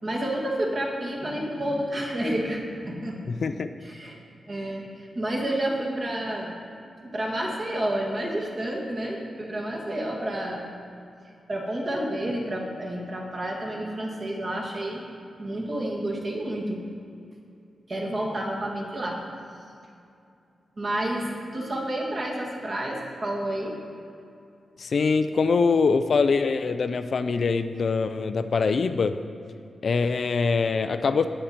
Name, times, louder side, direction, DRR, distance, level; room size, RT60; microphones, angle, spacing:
voice 1, 0.0-3.4 3.8-4.2 4.5-6.6 7.0-10.6 11.5-15.0 15.4-16.8 17.9-19.2 20.8-23.8, right 1 dB, 30° right, -1 dB, 1.9 m, -30 dB
voice 2, 3.3-3.7 24.8-29.2 29.8-31.3, left 4 dB, 45° left, 9 dB, 0.4 m, -23 dB
16.0 x 10.0 x 4.4 m, 2.6 s
wide cardioid pair, 175°, 0 cm